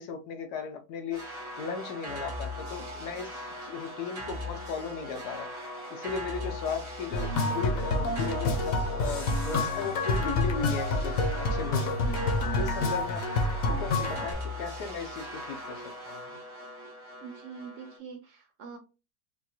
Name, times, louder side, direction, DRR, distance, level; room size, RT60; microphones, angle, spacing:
voice 1, 0.0-5.5 5.9-12.1 12.6-13.2 13.6-16.2, left 5 dB, 80° left, 1.3 m, -37 dB
sound 1, 1.1-18.0, left 1 dB, 25° right, 0.6 m, -39 dB
sound 2, 7.1-14.3, left 2 dB, 65° left, 1.1 m, -28 dB
voice 2, 17.2-18.8, right 5 dB, 65° right, 0.8 m, -43 dB
3.8 x 2.5 x 2.8 m
omnidirectional pair, 1.7 m